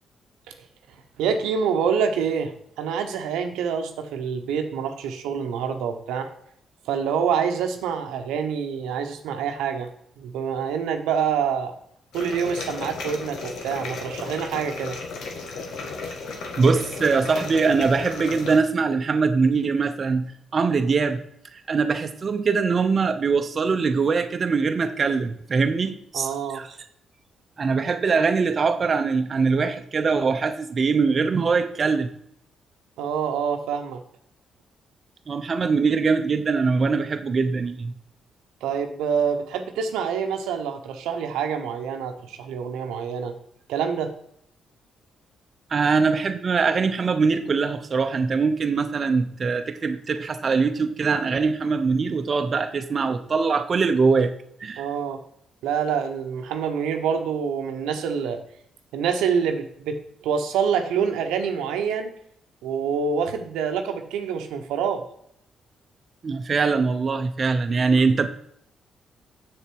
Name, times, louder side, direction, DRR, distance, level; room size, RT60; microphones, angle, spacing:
voice 1, 1.2-6.3 6.8-9.9 10.2-11.7 12.1-15.0 26.1-26.6 33.0-34.0 38.6-43.3 43.7-44.1 54.8-55.2 55.6-58.4 58.9-62.1 62.6-65.0, right 7 dB, 90° right, 6 dB, 0.9 m, -26 dB
sound 1, 12.1-18.6, left 4 dB, 75° left, 1.6 m, -34 dB
voice 2, 16.6-21.2 21.5-26.7 27.6-32.1 35.3-37.9 45.7-54.9 66.2-68.3, right 4 dB, 45° right, 7 dB, 0.7 m, -22 dB
7.1 x 6.9 x 4.7 m, 0.70 s
supercardioid pair, 70°, 0 cm